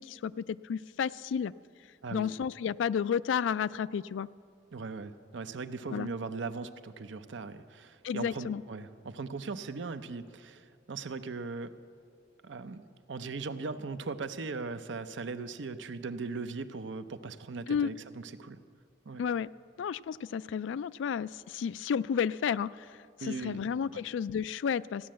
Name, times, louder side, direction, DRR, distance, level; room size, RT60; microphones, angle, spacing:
voice 1, 0.0-1.5 2.1-4.3 5.9-6.1 8.0-8.6 17.7-17.9 19.2-19.5 19.8-25.1, left 7 dB, 80° left, 18 dB, 0.3 m, -32 dB
voice 2, 4.7-11.7 12.4-18.6 19.1-19.2 23.2-23.6 23.9-24.0, right 4 dB, 75° right, 11 dB, 0.6 m, -39 dB
15.5 x 10.0 x 7.5 m, 2.3 s
head